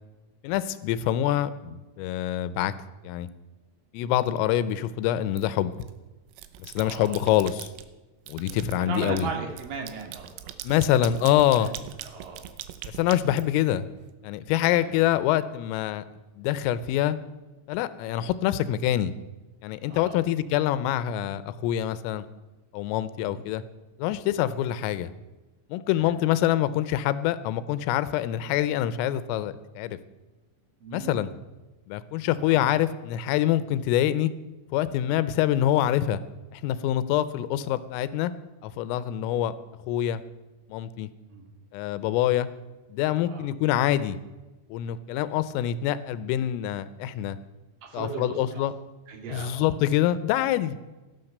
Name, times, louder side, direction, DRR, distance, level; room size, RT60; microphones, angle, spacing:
voice 1, 0.4-2.7 3.0-3.3 3.9-5.7 6.6-7.7 8.3-9.3 10.6-11.7 12.9-13.9 14.2-16.0 16.4-17.2 17.7-19.1 19.6-22.2 22.7-23.6 24.0-25.1 25.7-30.0 30.9-31.3 31.9-34.3 34.7-36.2 36.5-38.3 38.6-39.5 39.9-40.2 40.7-41.1 41.7-42.5 42.9-44.2 44.7-47.4 47.9-48.7 49.3-50.8, left 12 dB, 85° left, 14 dB, 3.4 m, -25 dB
sound 1, 5.4-5.9 6.3-7.9 8.3-14.0, right 12 dB, 85° right, 3.5 m, -42 dB
voice 2, 6.8-7.3 8.5-10.7 11.5-11.7 12.0-12.5 14.8-14.9 19.9-20.2 23.2-23.4 26.0-26.1 30.8-31.4 32.4-32.6 41.3-41.5 43.3-43.4 47.8-48.7 49.1-49.8, right 5 dB, 50° right, 2 dB, 3.6 m, -37 dB
17.0 x 12.0 x 6.7 m, 1.1 s
omnidirectional pair, 5.8 m